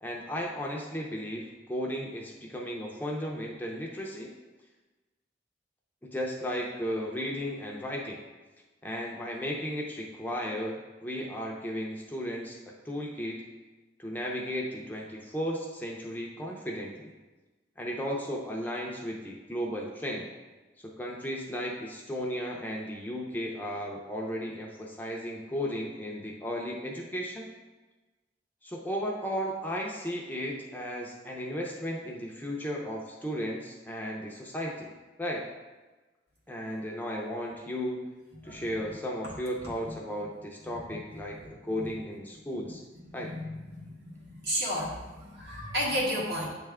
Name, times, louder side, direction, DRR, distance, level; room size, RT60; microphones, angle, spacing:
voice 1, 0.0-4.3 6.0-8.2 8.8-12.6 12.8-13.5 14.0-17.1 17.8-20.3 20.8-27.5 28.6-34.9 35.2-35.5 36.5-38.1 38.4-42.8 43.1-43.3, equal, 10° left, -2 dB, 0.6 m, -35 dB
voice 2, 43.1-46.5, equal, 65° right, -5 dB, 1.7 m, -33 dB
8.2 x 3.3 x 3.6 m, 1.2 s
head